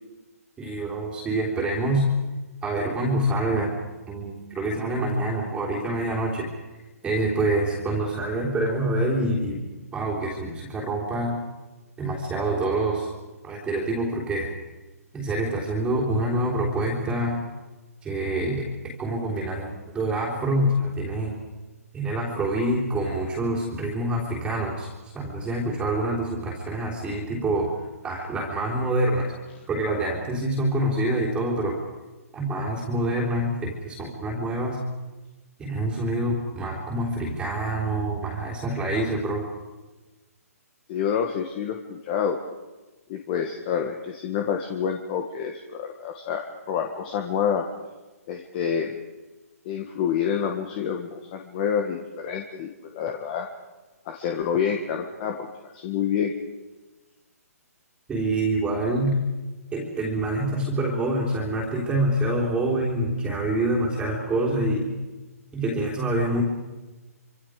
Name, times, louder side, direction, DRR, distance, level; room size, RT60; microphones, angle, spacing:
voice 1, 0.6-2.1 2.6-3.7 4.1-6.5 7.0-9.6 9.9-11.3 12.0-13.1 13.4-14.5 15.1-17.4 18.0-18.7 19.0-21.3 21.9-27.7 28.0-29.3 29.7-31.8 32.3-34.8 35.6-39.5 58.1-59.2 59.7-64.9 65.5-66.4, right 1 dB, 10° right, -3 dB, 3.6 m, -26 dB
voice 2, 40.9-42.4 43.1-47.7 48.3-48.9 49.7-53.5 54.1-56.3, left 7 dB, 35° left, 4 dB, 1.8 m, -28 dB
26.0 x 26.0 x 5.1 m, 1.2 s
hypercardioid pair, 155°, 9 cm